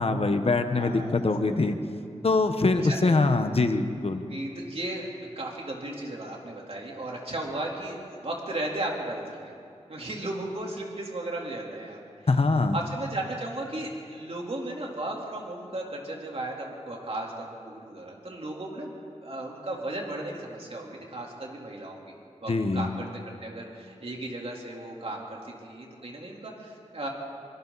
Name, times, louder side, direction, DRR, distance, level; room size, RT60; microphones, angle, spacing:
voice 1, 0.0-1.7 2.2-4.2 12.3-12.8 22.5-22.9, left 3 dB, 55° left, 7 dB, 1.3 m, -23 dB
voice 2, 0.8-1.6 2.8-3.0 4.3-9.5 9.9-12.1 12.7-18.9 19.2-22.0 22.4-27.1, right 1 dB, 55° right, -2 dB, 3.8 m, -35 dB
25.5 x 24.5 x 4.2 m, 2.4 s
wide cardioid pair, 90°, 12 cm